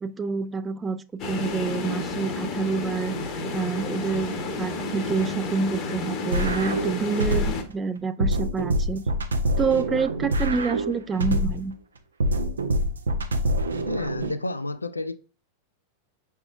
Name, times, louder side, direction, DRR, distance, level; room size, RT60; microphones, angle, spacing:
voice 1, 0.0-3.1 3.5-9.0 9.6-11.7, right 5 dB, 15° right, 0.3 m, -28 dB
sound 1, 1.2-7.6, left 2 dB, 35° left, 0.9 m, -31 dB
sound 2, 6.3-7.7 8.2-11.7 12.2-14.3, equal, 70° right, 0.6 m, -25 dB
voice 2, 13.9-15.1, left 2 dB, 80° left, 0.4 m, -30 dB
5.8 x 3.5 x 2.4 m
figure-of-eight pair, 90°, 0 cm